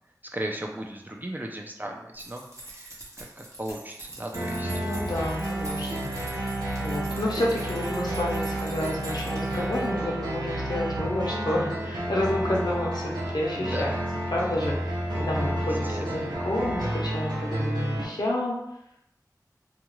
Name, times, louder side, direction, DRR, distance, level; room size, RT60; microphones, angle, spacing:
voice 1, 0.3-2.4 2.7-2.9 3.4-4.7 13.6-14.0 15.6-16.4, right 1 dB, 25° right, 1 dB, 0.4 m, -36 dB
sound 1, 2.1-9.9, right 2 dB, 45° right, 0.8 m, -44 dB
sound 2, 4.3-18.0, right 1 dB, 85° right, 0.5 m, -30 dB
voice 2, 4.7-6.1 6.8-13.9 14.3-18.6, left 1 dB, 85° left, -4 dB, 0.7 m, -30 dB
2.4 x 2.2 x 3.0 m, 0.79 s
wide cardioid pair, 45°, 7 cm